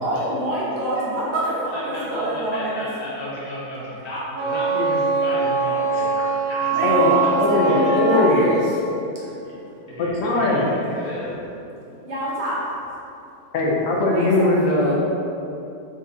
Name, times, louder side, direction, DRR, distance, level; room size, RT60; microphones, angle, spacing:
voice 1, 0.0-2.9 6.7-8.8 12.0-12.6 14.1-14.5 14.8-14.9, right 1 dB, 40° right, -7 dB, 0.8 m, -26 dB
voice 2, 1.4-7.0 7.6-8.0 9.2-9.5 9.9-11.4, left 1 dB, 30° left, -8 dB, 0.8 m, -32 dB
Wind instrument woodwind instrument, 4.3-8.6, right 3 dB, 75° right, 1.1 m, -22 dB
voice 3, 7.4-8.5 10.0-10.7 13.5-14.9, left 2 dB, 65° left, -3 dB, 1.0 m, -20 dB
3.9 x 3.5 x 2.7 m, 2.8 s
omnidirectional pair, 1.7 m